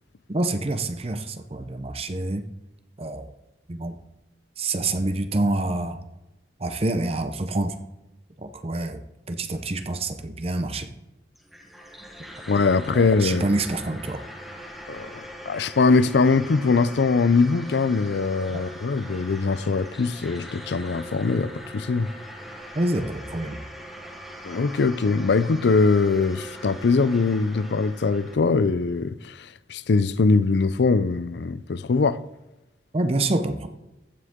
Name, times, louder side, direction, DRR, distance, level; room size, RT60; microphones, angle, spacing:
voice 1, 0.3-2.5 3.0-3.3 3.7-4.0 4.6-6.0 6.6-7.8 8.4-9.0 9.3-10.9 12.9-14.2 18.5-18.6 22.7-23.6 32.9-33.7, right 2 dB, 35° right, 0.7 m, -27 dB
sound 1, 11.4-28.3, equal, ahead, 1.3 m, -41 dB
voice 2, 12.5-13.5 14.9-22.1 24.4-32.2, left 4 dB, 70° left, 0.5 m, -22 dB
14.5 x 6.4 x 3.7 m
head